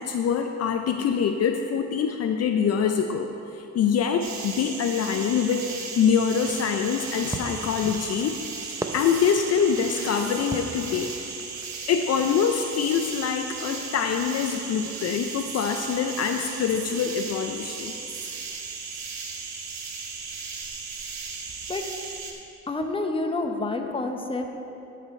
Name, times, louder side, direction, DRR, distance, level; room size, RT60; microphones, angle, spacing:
voice 1, 0.0-8.4 8.9-11.1 11.9-17.9, left 7 dB, 55° left, 6 dB, 0.5 m, -25 dB
sound 1, 4.2-22.3, right 4 dB, 65° right, 1.2 m, -36 dB
Fireworks, 6.4-12.0, right 2 dB, 10° right, 0.6 m, -39 dB
voice 2, 22.7-24.6, left 2 dB, 20° left, 4 dB, 0.8 m, -28 dB
13.5 x 5.1 x 4.3 m, 2.9 s
cardioid pair, 90°, 30 cm